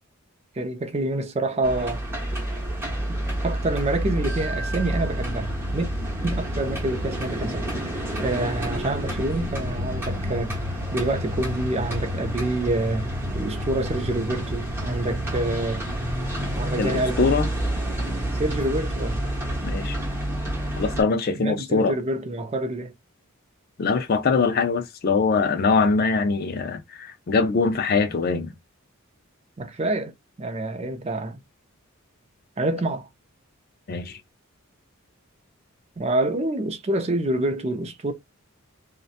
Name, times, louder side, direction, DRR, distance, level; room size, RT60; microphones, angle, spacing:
voice 1, 0.6-2.0 3.1-3.2 3.4-5.9 6.2-7.7 8.2-10.6 10.9-13.1 13.3-15.9 16.6-17.3 18.3-19.2 21.3-22.9 29.6-31.4 32.6-33.1 36.0-38.1, right 2 dB, 30° right, 0.4 m, -27 dB
sound 1, 1.6-21.0, equal, 10° right, 1.0 m, -29 dB
voice 2, 16.8-17.5 19.6-20.0 20.8-21.9 23.8-28.5 33.9-34.2, left 4 dB, 45° left, 0.4 m, -22 dB
2.7 x 2.1 x 2.4 m
head